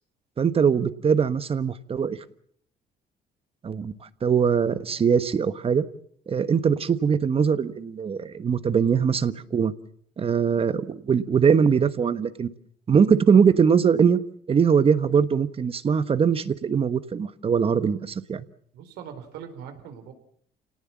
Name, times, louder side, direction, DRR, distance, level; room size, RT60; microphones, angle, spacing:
voice 1, 0.4-2.2 3.6-3.9 4.2-5.8 6.3-9.7 10.2-12.5 12.9-14.2 14.5-18.4, right 6 dB, 35° right, 13 dB, 1.2 m, -21 dB
voice 2, 18.7-20.1, right 8 dB, 85° right, 8 dB, 4.3 m, -41 dB
28.5 x 18.5 x 7.3 m, 0.64 s
cardioid pair, 110°, 17 cm